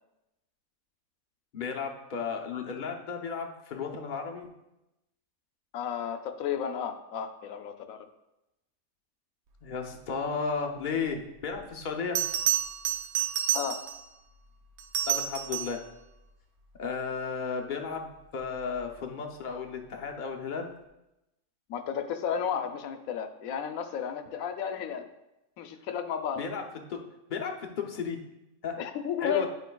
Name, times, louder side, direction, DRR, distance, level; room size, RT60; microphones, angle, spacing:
voice 1, 1.5-4.5 9.6-12.2 15.1-15.8 16.8-20.7 26.3-26.6 26.9-27.0 27.3-28.2 28.6-28.8 29.2-29.5, left 5 dB, 50° left, 3 dB, 0.6 m, -34 dB
voice 2, 5.7-8.1 13.5-13.9 21.7-25.1 25.6-26.4 28.8-29.5, left 8 dB, 75° left, 8 dB, 1.0 m, -33 dB
Bell, 11.5-11.6 12.1-14.1 14.8-15.9 18.5-18.8, right 11 dB, 80° right, 1.1 m, -29 dB
10.5 x 4.7 x 2.2 m, 0.93 s
omnidirectional pair, 1.5 m